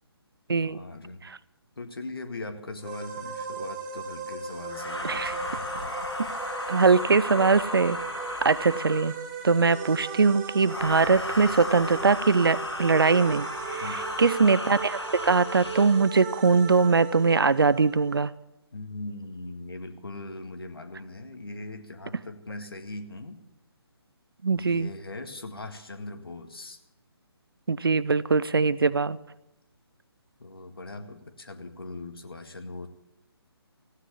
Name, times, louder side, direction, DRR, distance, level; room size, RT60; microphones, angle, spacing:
voice 1, 0.5-1.3 1.8-5.9 13.8-14.0 18.7-23.4 24.5-26.8 30.4-32.9, left 2 dB, 60° left, 7 dB, 1.9 m, -40 dB
chord bit, 2.8-18.2, right 6 dB, 20° right, 1.7 m, -37 dB
sound 1, 4.7-9.3 10.6-16.1, left 2 dB, 80° left, 1.2 m, -35 dB
voice 2, 6.7-8.0 8.4-9.1 9.4-18.3 24.4-24.9 27.7-29.2, right 4 dB, 60° right, 19 dB, 0.6 m, -22 dB
15.5 x 9.8 x 8.3 m, 0.89 s
figure-of-eight pair, 145°, 14 cm